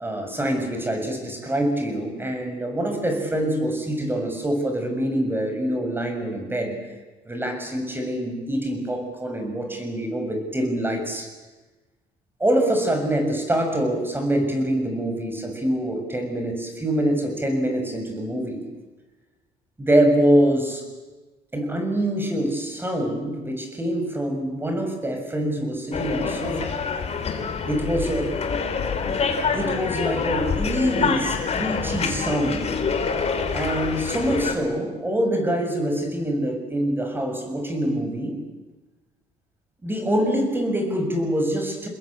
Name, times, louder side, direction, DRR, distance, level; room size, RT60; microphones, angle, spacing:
voice 1, 0.0-6.7 7.3-11.3 12.4-18.6 19.8-20.8 21.5-26.7 27.7-28.3 29.5-32.7 33.5-38.4 39.8-41.9, right 1 dB, 10° right, 5 dB, 6.6 m, -25 dB
sound 1, 25.9-34.5, left 5 dB, 40° left, 3.4 m, -26 dB
29.0 x 21.0 x 8.7 m, 1.2 s
cardioid pair, 110°, 17 cm